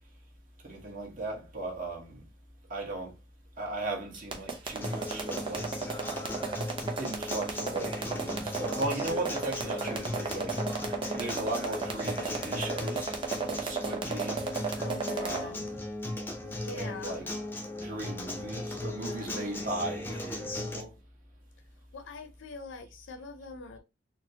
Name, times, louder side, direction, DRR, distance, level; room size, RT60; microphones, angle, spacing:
voice 1, 0.6-2.2 2.7-3.1 3.6-5.7 7.0-10.6 11.1-13.1 13.5-14.5 15.2-15.8 16.7-17.2 17.8-20.9, right 2 dB, 45° right, 1.1 m, -37 dB
sound 1, 4.1-15.4, right 4 dB, 25° right, 0.7 m, -34 dB
Acoustic guitar, 4.8-20.8, left 1 dB, 10° left, 0.5 m, -37 dB
voice 2, 14.8-15.7 16.4-17.2 19.0-19.6 21.9-23.8, left 3 dB, 80° left, 0.5 m, -44 dB
4.1 x 2.0 x 2.7 m
head